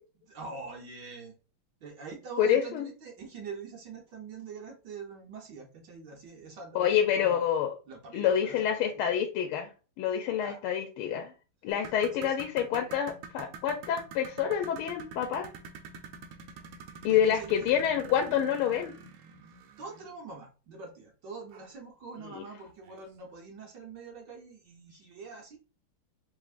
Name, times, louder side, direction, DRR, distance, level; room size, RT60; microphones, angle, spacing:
voice 1, 0.1-1.3 1.8-7.4 7.9-8.7 10.4-10.6 12.1-12.4 17.1-17.8 19.8-25.6, right 4 dB, 60° right, 0 dB, 1.3 m, -44 dB
voice 2, 2.4-2.9 6.7-7.8 8.1-9.7 10.0-11.3 11.6-15.5 17.0-18.9 22.2-22.4, left 9 dB, 80° left, 4 dB, 1.4 m, -27 dB
sound 1, 11.7-20.1 21.5-21.7 22.1-22.2 22.9-23.0, right 5 dB, 90° right, 1.7 m, -47 dB
5.0 x 3.4 x 2.4 m, 0.34 s
omnidirectional pair, 2.4 m